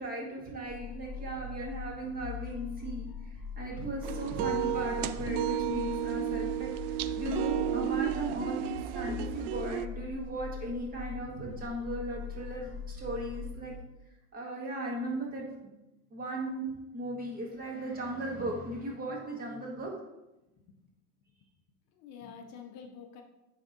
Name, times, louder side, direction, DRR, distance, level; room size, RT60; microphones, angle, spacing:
voice 1, 0.0-3.1 3.6-13.7 14.3-15.7 16.1-16.7 16.9-19.9, right 1 dB, 25° right, -1 dB, 1.7 m, -37 dB
sound 1, 0.6-13.7, left 4 dB, ahead, 2.3 m, -42 dB
sound 2, 4.0-9.9, right 11 dB, 70° right, 0.5 m, -33 dB
voice 2, 21.9-23.2, left 6 dB, 45° left, 3 dB, 0.8 m, -48 dB
9.6 x 3.6 x 3.9 m, 0.97 s
supercardioid pair, 145°, 37 cm